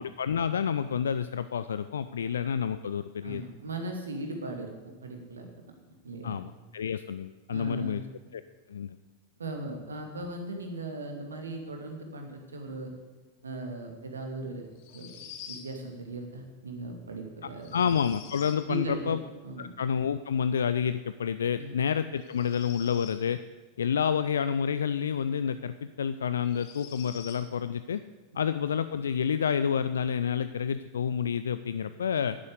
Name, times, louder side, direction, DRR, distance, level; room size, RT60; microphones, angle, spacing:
voice 1, 0.0-3.4 6.2-8.0 8.3-8.4 8.7-9.0 17.7-19.2 19.6-23.4 23.8-28.0 28.3-32.4, left 7 dB, 65° left, 13 dB, 0.4 m, -29 dB
voice 2, 3.2-4.7 5.0-5.5 5.9-6.4 7.5-8.0 9.4-12.9 13.4-17.9 18.6-19.1 19.4-19.7 21.6-21.8, right 2 dB, 70° right, 3 dB, 2.5 m, -38 dB
sound 1, 14.8-15.7 17.6-18.6 22.2-23.2 25.4-25.5 26.4-27.4, left 8 dB, 45° left, 1.9 m, -46 dB
11.5 x 9.8 x 8.1 m, 1.2 s
figure-of-eight pair, 90°, 0 cm